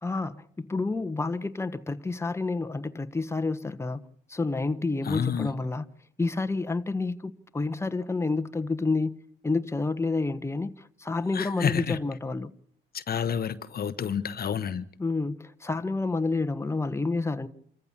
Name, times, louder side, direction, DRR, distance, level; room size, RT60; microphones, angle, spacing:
voice 1, 0.0-4.0 4.3-5.9 6.2-9.2 9.4-12.5 15.0-17.5, left 3 dB, 15° left, 1.2 m, -29 dB
voice 2, 5.0-5.5 11.3-12.0 12.9-14.8, left 8 dB, 50° left, 1.0 m, -29 dB
26.5 x 14.5 x 7.3 m
cardioid pair, 90°, 20 cm